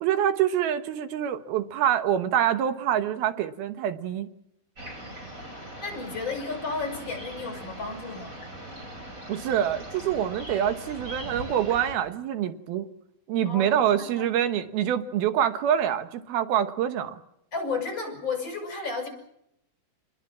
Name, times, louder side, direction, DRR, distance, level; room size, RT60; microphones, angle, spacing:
voice 1, 0.0-4.3 9.3-12.9 13.3-17.2, right 10 dB, 85° right, 10 dB, 3.1 m, -26 dB
sound 1, 4.8-12.0, right 1 dB, 20° right, 5.4 m, -40 dB
voice 2, 5.6-8.4 13.5-14.3 17.5-19.1, left 4 dB, 30° left, 4 dB, 7.7 m, -33 dB
28.5 x 21.0 x 7.5 m, 0.78 s
omnidirectional pair, 4.3 m